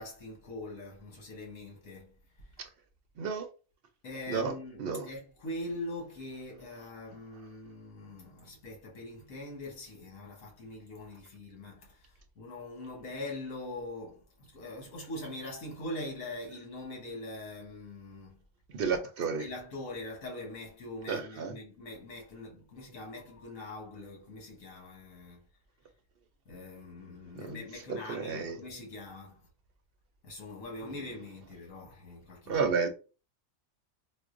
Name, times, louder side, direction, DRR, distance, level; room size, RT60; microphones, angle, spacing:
voice 1, 0.0-2.1 4.0-12.0 12.4-14.2 14.5-18.4 19.4-25.4 26.5-29.4 30.2-32.7, left 2 dB, 80° left, 1.5 m, -42 dB
voice 2, 18.7-19.5 21.1-21.6 27.4-27.6 27.9-28.6 32.5-32.9, right 5 dB, 60° right, 0.7 m, -31 dB
4.8 x 2.1 x 2.5 m
omnidirectional pair, 1.3 m